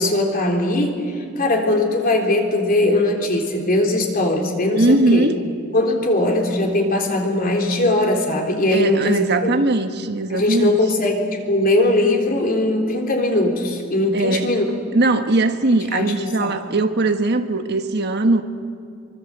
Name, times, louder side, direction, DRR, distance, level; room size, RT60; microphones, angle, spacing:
voice 1, 0.0-5.3 5.7-9.5 10.3-14.6 15.9-16.6, left 1 dB, 45° left, 1 dB, 3.8 m, -20 dB
voice 2, 4.8-5.4 8.7-10.8 14.1-14.5 14.9-18.4, right 2 dB, 55° right, 7 dB, 1.3 m, -19 dB
25.5 x 24.5 x 8.0 m, 2.4 s
head